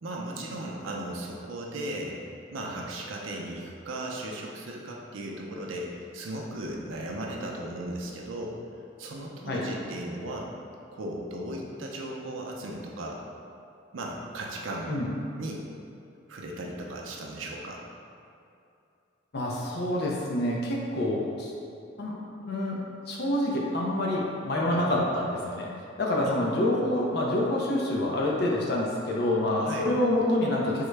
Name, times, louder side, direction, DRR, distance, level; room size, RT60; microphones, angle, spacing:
voice 1, 0.0-2.2 2.5-8.6 9.0-10.5 10.9-13.2 13.9-14.9 15.4-15.6 16.3-17.8 24.7-25.0 26.2-26.3 29.5-29.9, right 1 dB, 80° right, -1 dB, 0.5 m, -36 dB
voice 2, 19.3-21.5 22.0-22.1 22.5-25.7 26.0-30.9, left 1 dB, 55° left, -3 dB, 0.5 m, -27 dB
3.6 x 2.1 x 3.2 m, 2.6 s
head